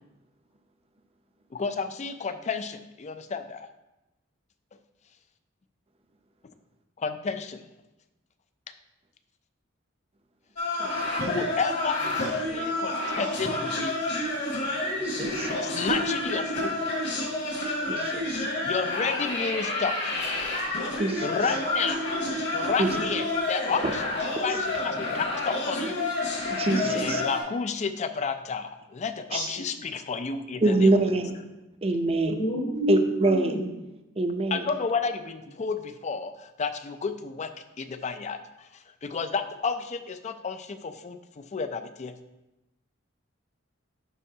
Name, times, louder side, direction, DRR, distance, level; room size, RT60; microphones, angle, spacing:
voice 1, 1.5-3.7 7.0-7.7 11.2-14.0 15.6-16.8 18.3-20.1 21.2-22.1 22.5-26.0 26.8-30.9 34.5-37.5 37.8-42.2, left 5 dB, 35° left, 10 dB, 0.4 m, -31 dB
sound 1, 10.6-27.4, left 2 dB, 60° left, 2.0 m, -29 dB
voice 2, 15.0-15.5 17.9-18.5 21.0-21.3 22.8-22.9 26.6-27.2 30.6-31.4 31.8-32.3 32.9-33.7 34.2-34.6, right 2 dB, 30° right, 6 dB, 0.6 m, -24 dB
voice 3, 29.3-29.6 32.3-33.7, left 2 dB, 75° left, -10 dB, 2.3 m, -29 dB
11.0 x 4.6 x 2.8 m, 0.96 s
head